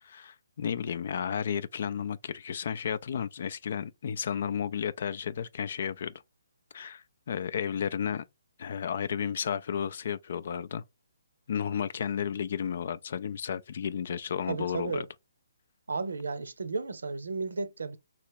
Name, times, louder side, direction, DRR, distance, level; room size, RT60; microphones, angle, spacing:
voice 1, 0.0-6.1 6.7-8.2 8.6-10.8 11.5-15.1, left 8 dB, 55° left, 0.3 m, -33 dB
voice 2, 14.5-15.1 15.9-18.0, right 4 dB, 80° right, 0.7 m, -33 dB
3.2 x 2.9 x 4.6 m
hypercardioid pair, 145°, 0 cm